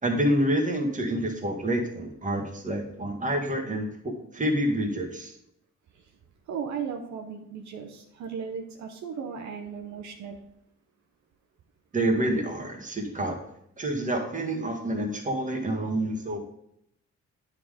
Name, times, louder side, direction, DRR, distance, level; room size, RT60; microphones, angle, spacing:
voice 1, 0.0-5.3 11.9-13.4 13.8-16.4, right 1 dB, 25° right, 1 dB, 1.7 m, -28 dB
voice 2, 6.5-10.4, right 6 dB, 70° right, 3 dB, 0.8 m, -36 dB
9.3 x 3.8 x 5.0 m, 0.76 s
cardioid pair, 90°, 30 cm